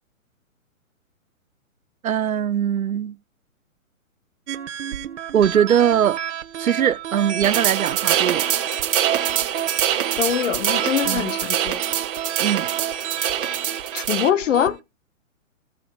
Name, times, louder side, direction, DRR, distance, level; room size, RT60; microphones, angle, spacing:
voice 1, 2.0-3.2 5.3-6.2 6.6-8.5 11.0-11.3 12.4-12.7, right 9 dB, 90° right, 0.8 m, -21 dB
Spy on the run, 4.5-14.7, right 9 dB, 60° right, 1.1 m, -31 dB
sound 1, 7.4-14.3, right 10 dB, 40° right, 2.0 m, -24 dB
voice 2, 10.2-11.8 13.9-14.8, left 9 dB, 65° left, 1.0 m, -23 dB
16.0 x 6.9 x 2.3 m
hypercardioid pair, 140°, 41 cm